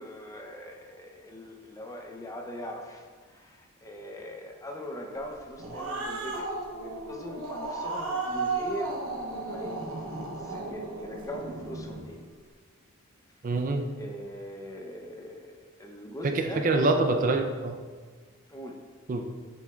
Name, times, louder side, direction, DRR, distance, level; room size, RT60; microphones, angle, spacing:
voice 1, 0.0-12.3 13.4-13.6 14.0-16.6 18.5-18.8, left 1 dB, 15° left, 1 dB, 0.6 m, -41 dB
Growling, 5.3-12.1, right 3 dB, 75° right, 1.0 m, -34 dB
voice 2, 13.4-13.9 16.2-17.8 19.1-19.2, right 2 dB, 40° right, 5 dB, 0.4 m, -25 dB
7.2 x 6.2 x 2.3 m, 1.5 s
head